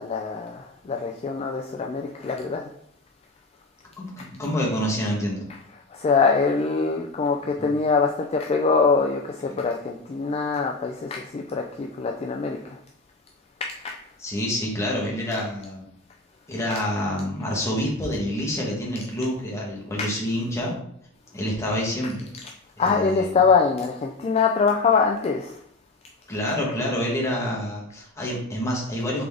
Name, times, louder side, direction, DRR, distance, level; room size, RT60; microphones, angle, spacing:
voice 1, 0.0-2.7 4.2-4.3 5.5-12.8 13.8-14.0 16.7-16.8 20.0-20.1 22.0-22.1 22.4-22.5 22.8-25.6, left 5 dB, 30° left, 0.3 m, -24 dB
voice 2, 4.0-5.4 7.6-7.7 9.5-9.6 14.2-15.9 16.5-20.7 21.3-22.3 22.8-23.3 26.3-29.2, equal, 15° left, 1.1 m, -27 dB
3.7 x 3.4 x 3.4 m
head